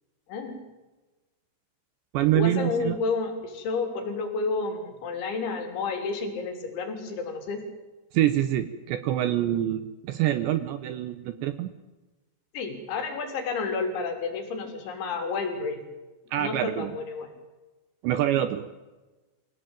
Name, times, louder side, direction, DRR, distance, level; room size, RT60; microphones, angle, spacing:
voice 1, 0.3-0.6 2.3-7.6 12.5-15.8 16.4-17.3, left 4 dB, 65° left, 4 dB, 5.7 m, -30 dB
voice 2, 2.1-3.0 8.1-11.7 16.3-17.0 18.0-18.7, right 12 dB, 75° right, 11 dB, 2.8 m, -26 dB
26.0 x 17.0 x 9.1 m, 1.2 s
omnidirectional pair, 6.0 m